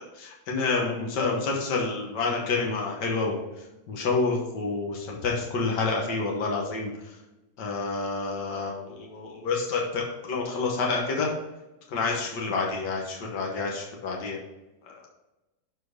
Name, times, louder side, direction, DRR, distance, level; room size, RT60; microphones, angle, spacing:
voice 1, 0.2-3.4 3.9-6.9 7.6-11.3 11.9-14.4 14.9-15.0, left 4 dB, 75° left, -1 dB, 1.9 m, -28 dB
6.9 x 4.5 x 5.1 m, 1.0 s
omnidirectional pair, 1.9 m